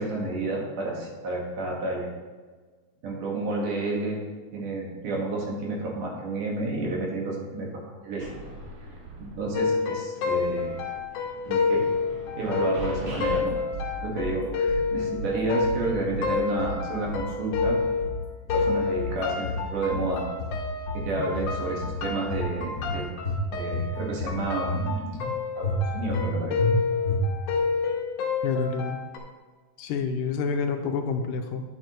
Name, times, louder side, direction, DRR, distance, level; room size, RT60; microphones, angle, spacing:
voice 1, 0.0-2.1 3.0-4.2 4.5-8.3 9.2-10.8 11.4-11.9 12.3-13.6 14.0-17.8 18.5-20.3 20.9-23.1 23.5-25.2 25.6-26.8, right 2 dB, 70° right, -2 dB, 3.1 m, -30 dB
sound 1, 8.2-9.9 10.1-13.4, right 2 dB, 45° right, 2.3 m, -42 dB
sound 2, 9.5-18.2 18.5-29.2, left 5 dB, 65° left, 1.8 m, -29 dB
sound 3, 12.8-13.4 13.7-14.4 14.7-15.4 15.6-16.3 16.6-17.3 17.5-18.2 18.5-19.2 19.4-20.1 20.4-21.1 21.3-22.0 22.3-22.9 23.2-23.9 24.2-24.8 25.1-25.3 25.6-26.3 26.6-26.7 27.1-27.6, left 1 dB, 50° left, 1.1 m, -31 dB
voice 2, 28.4-29.0 29.8-31.6, left 5 dB, 90° left, 5 dB, 2.3 m, -28 dB
9.3 x 7.9 x 3.0 m, 1.4 s
omnidirectional pair, 3.8 m